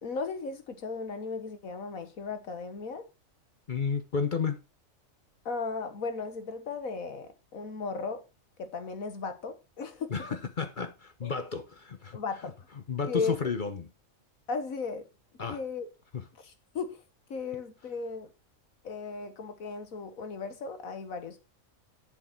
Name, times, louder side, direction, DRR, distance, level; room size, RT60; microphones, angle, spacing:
voice 1, 0.0-3.1 5.5-8.2 8.6-10.1 11.2-11.3 12.1-12.5 13.0-13.5 14.5-15.0 15.5-15.9 16.4-17.0 17.3-18.3 18.8-21.4, left 4 dB, 85° left, 1.8 m, -36 dB
voice 2, 3.7-4.6 10.1-12.2 12.9-13.9 15.4-15.6 16.1-16.2, left 5 dB, 40° left, 0.9 m, -32 dB
9.1 x 7.3 x 4.4 m
omnidirectional pair, 1.4 m